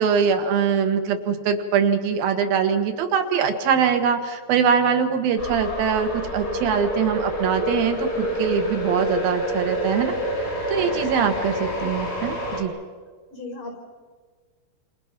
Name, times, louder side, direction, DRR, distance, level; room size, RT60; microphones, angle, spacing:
voice 1, 0.0-10.1 10.7-12.7, right 7 dB, 85° right, 6 dB, 3.4 m, -22 dB
sound 1, 5.4-12.6, equal, 25° left, 5.5 m, -28 dB
voice 2, 13.3-13.8, left 2 dB, 60° left, 3 dB, 6.6 m, -37 dB
29.0 x 27.5 x 6.0 m, 1.5 s
omnidirectional pair, 4.1 m